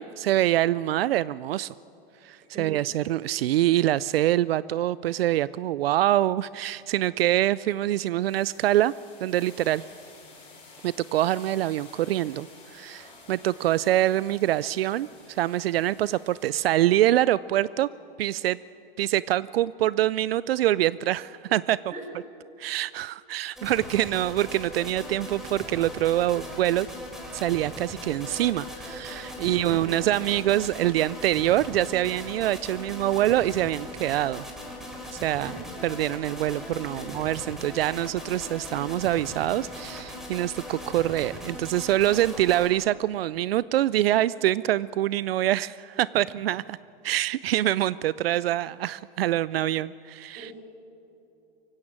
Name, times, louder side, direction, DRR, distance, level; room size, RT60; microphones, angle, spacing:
voice 1, 0.0-1.7 2.2-8.9 9.2-9.8 10.8-12.5 12.7-17.9 18.2-18.6 19.0-21.8 22.6-26.9 27.3-34.4 35.1-35.5 35.8-46.8 47.0-50.5, right 13 dB, 85° right, 19 dB, 0.5 m, -25 dB
sound 1, 6.8-7.1 7.5-16.5, left 3 dB, 20° left, 6.8 m, -51 dB
sound 2, 23.6-42.7, left 1 dB, ahead, 3.9 m, -39 dB
voice 2, 29.4-30.2 35.3-35.7 37.0-37.1 50.4-50.5, right 1 dB, 25° right, 2 dB, 5.5 m, -41 dB
24.0 x 16.0 x 7.5 m, 2.8 s
hypercardioid pair, 130°, 29 cm